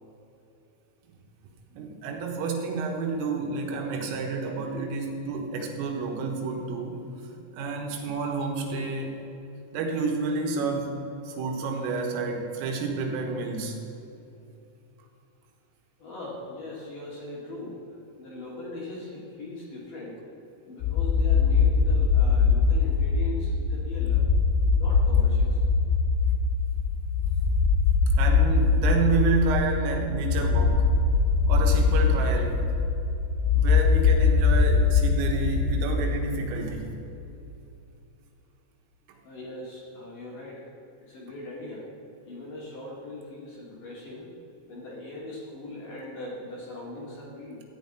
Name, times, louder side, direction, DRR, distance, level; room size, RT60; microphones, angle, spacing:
voice 1, 1.7-7.0 7.5-9.2 9.7-11.0 11.2-13.8 28.2-30.9 31.5-32.7 33.6-36.9, right 4 dB, 85° right, 2 dB, 3.9 m, -29 dB
voice 2, 16.0-17.8 18.2-20.2 20.7-24.2 24.7-25.7 39.2-40.6 41.1-41.9 42.2-44.3 44.7-47.6, left 2 dB, 55° left, -5 dB, 2.8 m, -40 dB
sound 1, 20.8-36.4, left 5 dB, 80° left, 2.4 m, -22 dB
14.0 x 5.7 x 9.3 m, 2.8 s
omnidirectional pair, 5.9 m